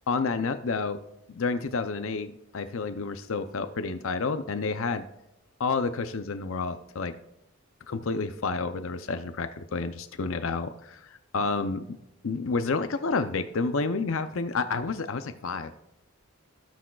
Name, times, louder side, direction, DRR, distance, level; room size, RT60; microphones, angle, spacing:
voice 1, 0.1-1.0 1.3-5.0 5.6-7.1 7.9-12.0 12.2-15.7, left 4 dB, 70° left, 9 dB, 0.5 m, -30 dB
17.5 x 6.2 x 2.3 m, 0.89 s
head